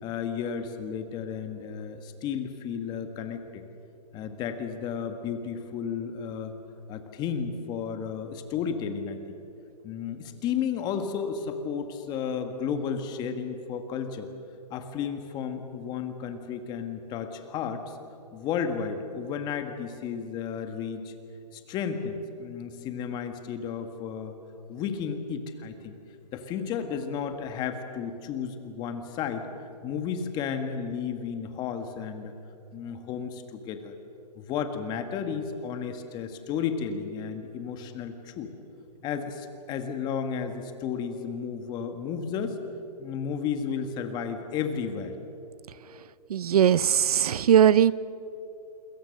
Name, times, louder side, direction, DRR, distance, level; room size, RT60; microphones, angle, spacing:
voice 1, 0.0-3.6 4.1-6.6 6.9-9.4 9.8-14.3 14.7-18.0 18.3-21.1 21.5-24.3 24.7-26.0 26.3-29.5 29.8-32.4 32.7-34.0 34.4-38.5 39.0-42.6 43.0-45.2, left 7 dB, 20° left, 7 dB, 1.7 m, -33 dB
voice 2, 46.3-47.9, right 9 dB, 65° right, 19 dB, 0.6 m, -19 dB
28.0 x 22.5 x 6.6 m, 2.8 s
hypercardioid pair, 150°, 21 cm